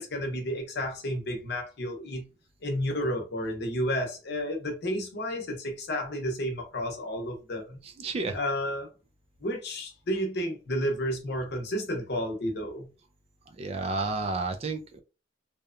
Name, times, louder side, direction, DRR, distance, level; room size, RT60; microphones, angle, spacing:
voice 1, 0.0-2.3 2.6-7.8 8.3-8.9 9.4-12.9, equal, 60° left, 0.7 m, -31 dB
voice 2, 7.8-8.4 13.6-15.0, right 3 dB, 35° right, 0.3 m, -31 dB
2.8 x 2.1 x 2.5 m
head